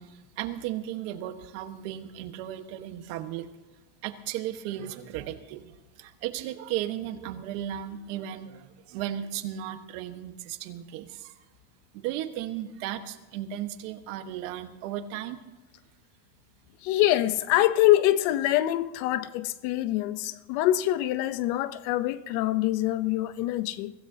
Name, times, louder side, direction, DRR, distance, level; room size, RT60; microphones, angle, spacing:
voice 1, 0.0-3.5 4.0-5.7 6.0-11.4 11.9-15.4, right 12 dB, 90° right, 1.4 m, -35 dB
voice 2, 16.8-23.9, left 14 dB, 75° left, 0.8 m, -25 dB
23.5 x 15.5 x 2.8 m
cardioid pair, 175°, 45 cm